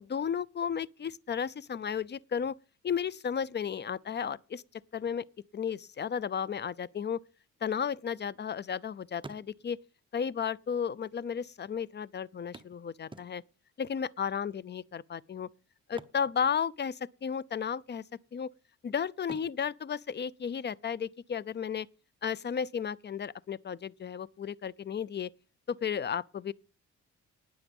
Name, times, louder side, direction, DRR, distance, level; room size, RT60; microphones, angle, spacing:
voice 1, 0.0-2.6 2.8-4.6 4.9-5.2 5.5-7.2 7.6-9.8 10.1-13.4 13.8-15.5 15.9-18.0 18.3-18.5 18.8-21.9 22.2-25.3 25.7-26.5, left 7 dB, 35° left, 0.6 m, -33 dB
sound 1, 7.5-8.8 9.1-10.0 10.9-11.0 11.2-11.3 12.5-13.7 15.8-17.1 17.3-17.6 18.1-18.7 19.2-21.0 22.9-23.0 23.5-23.6, right 3 dB, 15° right, 1.0 m, -51 dB
19.0 x 7.1 x 5.4 m
cardioid pair, 90°, 30 cm